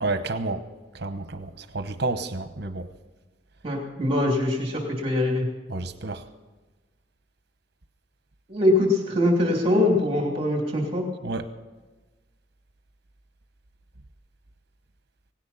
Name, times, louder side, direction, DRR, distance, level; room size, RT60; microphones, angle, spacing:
voice 1, 0.0-0.6 0.9-2.9 5.7-6.2 11.2-11.4, right 3 dB, 55° right, 8 dB, 1.0 m, -30 dB
voice 2, 3.6-5.5 8.5-11.1, left 1 dB, 30° right, 0 dB, 2.8 m, -23 dB
18.5 x 17.0 x 4.2 m, 1.2 s
head